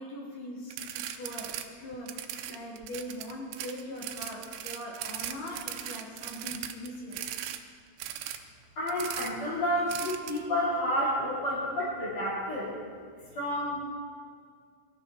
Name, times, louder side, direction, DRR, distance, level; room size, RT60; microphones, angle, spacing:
voice 1, 0.0-7.3, left 1 dB, 60° left, -4 dB, 5.4 m, -41 dB
sound 1, 0.7-1.6 1.9-7.6 8.0-8.4 8.9-9.3 9.9-10.4, right 11 dB, 85° right, 2.9 m, -38 dB
voice 2, 8.8-12.7 13.3-13.8, equal, 35° left, -12 dB, 5.4 m, -30 dB
23.0 x 14.0 x 4.5 m, 2.1 s
omnidirectional pair, 4.9 m